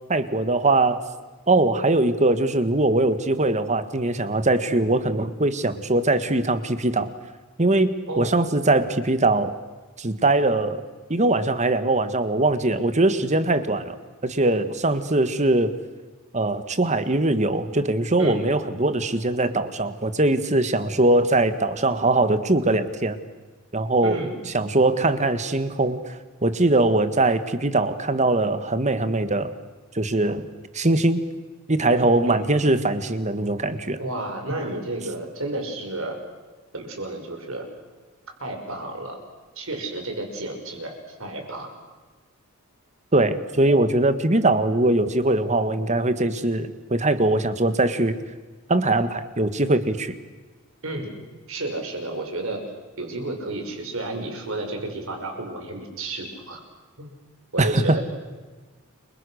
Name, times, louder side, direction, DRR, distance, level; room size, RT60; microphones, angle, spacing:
voice 1, 0.1-1.0 1.5-7.1 7.6-9.5 10.0-10.8 11.1-14.0 14.2-15.7 16.3-23.2 23.7-24.2 24.5-26.0 26.4-29.5 30.0-30.5 30.7-31.2 31.7-34.0 43.1-48.2 48.7-50.1 57.6-58.0, right 2 dB, 30° right, 11 dB, 1.6 m, -21 dB
voice 2, 24.0-24.4 31.9-32.4 34.0-36.2 36.7-37.6 38.4-39.2 39.6-41.7 50.8-51.1 51.5-52.6 53.0-56.6 57.0-57.1 57.5-58.0, right 2 dB, 65° right, 3 dB, 6.0 m, -31 dB
30.0 x 24.0 x 6.5 m, 1.3 s
head